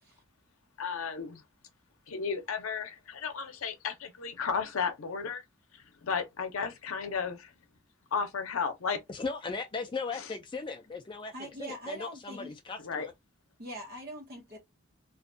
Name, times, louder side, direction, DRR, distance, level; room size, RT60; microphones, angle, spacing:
voice 1, 0.8-1.4 2.1-5.4 5.7-7.5 8.1-9.0 10.1-10.3 12.8-13.1, left 5 dB, 80° left, 0.6 m, -34 dB
voice 2, 9.1-11.3 11.6-13.1, left 4 dB, 20° left, 0.3 m, -37 dB
voice 3, 11.3-12.5 13.6-14.6, right 1 dB, 45° right, 1.0 m, -42 dB
2.4 x 2.2 x 2.5 m
head